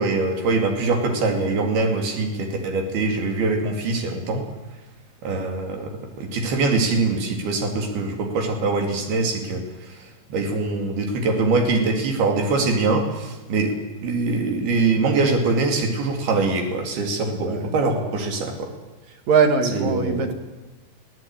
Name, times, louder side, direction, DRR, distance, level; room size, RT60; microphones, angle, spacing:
voice 1, 0.0-4.4 5.2-5.9 6.2-13.7 14.0-18.7 19.7-20.3, right 3 dB, 85° right, 3 dB, 4.4 m, -23 dB
voice 2, 19.3-20.3, right 5 dB, 55° right, 6 dB, 3.0 m, -20 dB
23.0 x 15.5 x 8.9 m, 1.1 s
omnidirectional pair, 4.3 m